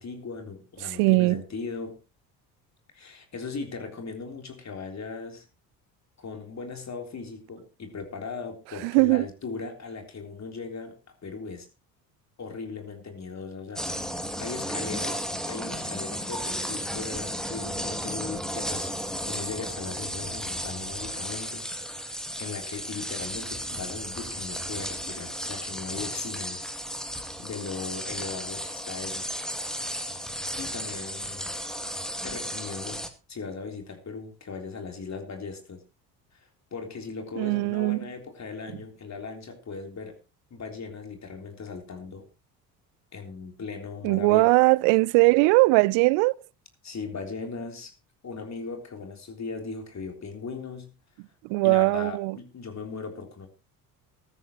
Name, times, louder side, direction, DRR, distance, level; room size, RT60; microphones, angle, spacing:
voice 1, 0.0-2.0 2.9-5.5 6.2-11.7 12.4-18.9 19.3-21.7 22.0-26.6 27.4-29.3 30.6-31.6 32.2-33.0 33.3-35.8 36.3-40.2 40.5-42.3 43.1-44.5 46.8-47.9 48.2-50.9 51.6-53.5, left 4 dB, 35° left, 3.6 m, -38 dB
voice 2, 0.8-1.4 8.8-9.3 37.4-38.0 44.0-46.3 51.5-52.4, right 25 dB, 65° right, 0.6 m, -20 dB
sound 1, 13.8-33.1, equal, ahead, 2.2 m, -34 dB
15.5 x 13.5 x 3.0 m
hypercardioid pair, 60°, 48 cm